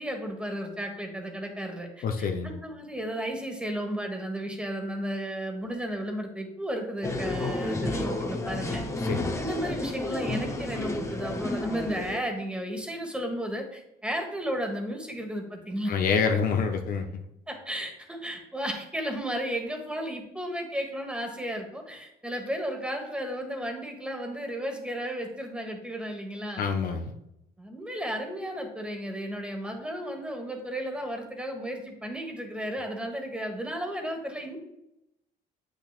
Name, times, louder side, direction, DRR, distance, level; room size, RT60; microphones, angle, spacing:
voice 1, 0.0-8.8 9.4-15.9 17.5-26.7 27.6-34.6, equal, 5° right, 3 dB, 1.4 m, -34 dB
voice 2, 2.0-2.5 9.0-9.4 15.9-17.2 26.6-27.1, left 5 dB, 60° left, 5 dB, 0.7 m, -27 dB
sound 1, 7.0-12.2, left 2 dB, 15° left, 0.8 m, -31 dB
8.4 x 6.4 x 2.4 m, 0.85 s
cardioid pair, 110°, 17 cm